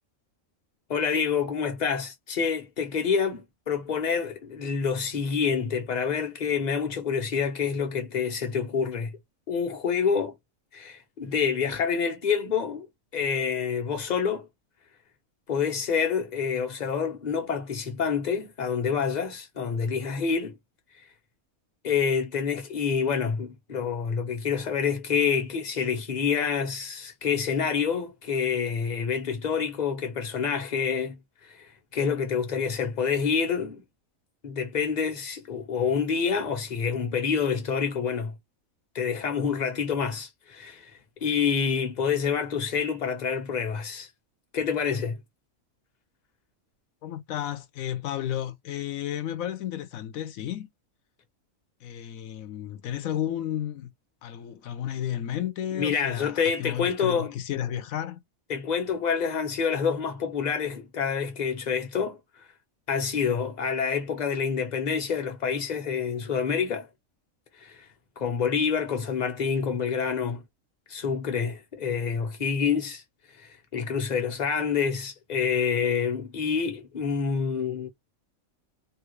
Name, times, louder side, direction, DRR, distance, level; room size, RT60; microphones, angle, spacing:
voice 1, 0.9-9.2 9.5-10.3 10.7-12.9 13.1-14.5 15.5-20.5 21.8-31.2 31.4-33.8 34.4-38.3 38.9-44.1 44.5-45.2 55.7-57.3 58.5-62.4 62.9-66.9 67.6-67.9 68.2-70.4 70.9-73.0 73.4-77.9, left 6 dB, 35° left, 0.9 m, -27 dB
voice 2, 47.0-50.7 51.8-53.9 54.2-58.2, left 11 dB, 85° left, 1.1 m, -32 dB
3.1 x 2.4 x 3.0 m
omnidirectional pair, 1.4 m